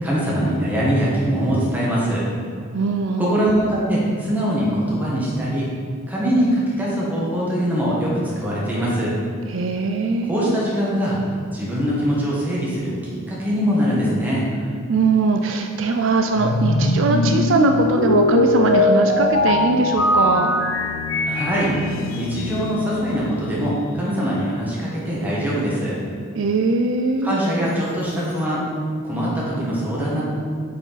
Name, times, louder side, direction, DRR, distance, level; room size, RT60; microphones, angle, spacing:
voice 1, 0.0-2.2 3.2-5.7 6.1-9.1 10.2-11.2 11.5-14.5 21.3-21.8 22.1-25.9 27.2-28.6 29.0-30.2, equal, 10° right, -7 dB, 1.5 m, -22 dB
voice 2, 2.7-3.4 9.5-10.6 14.9-20.5 26.4-27.4, right 3 dB, 60° right, 4 dB, 0.4 m, -21 dB
sound 1, 16.3-23.6, left 2 dB, 65° left, 0.5 m, -21 dB
8.4 x 4.6 x 4.0 m, 2.2 s
head